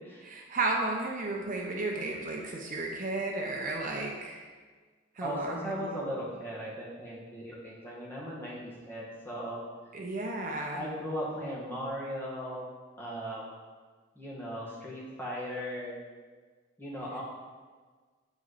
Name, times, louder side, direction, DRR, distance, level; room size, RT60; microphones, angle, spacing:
voice 1, 0.2-4.5 5.2-6.0 9.9-10.8, right 2 dB, 40° right, 0 dB, 0.8 m, -33 dB
voice 2, 5.2-9.6 10.7-12.7 13.0-13.5 14.2-16.0 16.8-17.2, equal, 10° left, -6 dB, 1.8 m, -37 dB
8.1 x 7.6 x 4.1 m, 1.5 s
head